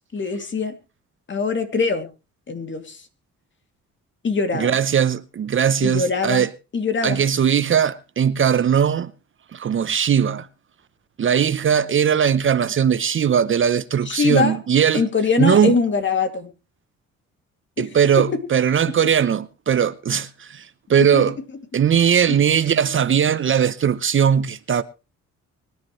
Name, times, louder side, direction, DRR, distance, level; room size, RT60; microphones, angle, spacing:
voice 1, 0.1-0.8 1.3-2.1 2.5-3.0 4.2-4.7 5.8-6.5 6.7-7.2 14.1-14.6 14.9-16.5 17.8-17.9 21.0-21.2, left 4 dB, 40° left, 2.6 m, -22 dB
voice 2, 4.5-6.5 7.0-9.1 9.5-10.5 11.2-15.0 15.4-15.7 17.8-21.4 21.7-24.8, right 8 dB, 40° right, 0.7 m, -19 dB
24.5 x 10.5 x 3.1 m
cardioid pair, 90°, 30 cm